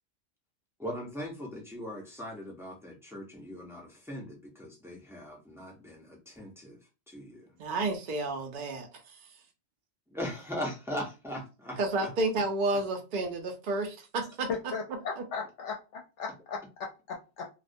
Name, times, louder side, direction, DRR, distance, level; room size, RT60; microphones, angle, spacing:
voice 1, 0.8-6.8 7.1-7.6 10.1-12.1 12.4-12.5, equal, 5° right, 0.4 m, -40 dB
voice 2, 7.6-9.2 11.8-14.5, right 2 dB, 60° right, 0.5 m, -31 dB
voice 3, 14.5-15.8 16.2-17.4, left 5 dB, 75° left, 0.9 m, -36 dB
2.3 x 2.1 x 2.6 m
omnidirectional pair, 1.3 m